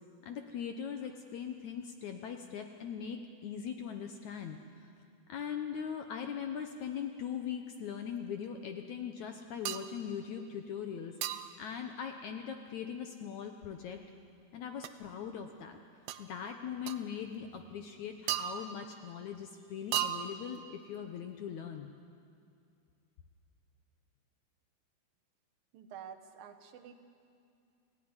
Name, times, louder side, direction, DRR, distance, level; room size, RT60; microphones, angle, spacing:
voice 1, 0.2-4.9 5.3-11.2 11.6-14.0 14.5-15.8 16.2-21.9, left 7 dB, 70° left, 5 dB, 1.9 m, -40 dB
sound 1, 9.7-10.0 11.2-11.6 14.8-14.9 16.1-16.2 16.9-17.0 18.3-19.0 19.9-20.6, right 11 dB, 90° right, 2.9 m, -36 dB
voice 2, 25.7-26.9, right 8 dB, 70° right, 7 dB, 2.9 m, -49 dB
28.5 x 16.5 x 9.7 m, 2.5 s
omnidirectional pair, 4.3 m